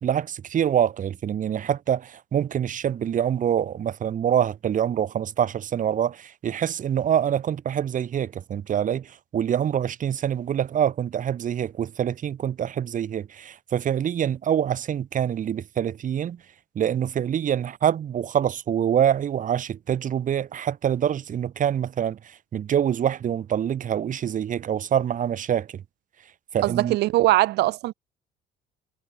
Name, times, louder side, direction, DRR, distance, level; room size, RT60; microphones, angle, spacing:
voice 1, 0.0-16.4 16.7-25.8 26.5-27.0, right 9 dB, 50° right, 4.3 m, -25 dB
voice 2, 26.6-27.9, right 17 dB, 80° right, 1.9 m, -21 dB
cardioid pair, 110°, 17 cm